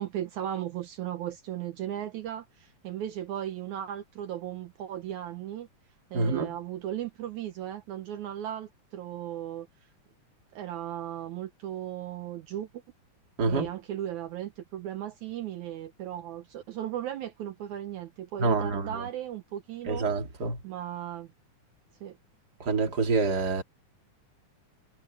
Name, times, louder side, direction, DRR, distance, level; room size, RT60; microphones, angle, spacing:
voice 1, 0.0-5.7 6.1-9.7 10.5-12.7 13.5-20.1 20.6-21.3 22.0-22.2, right 11 dB, 70° right, 2.3 m, -36 dB
voice 2, 6.1-6.5 13.4-13.7 18.4-19.1 19.8-20.6 22.6-23.6, right 4 dB, 30° right, 2.8 m, -27 dB
omnidirectional pair, 3.6 m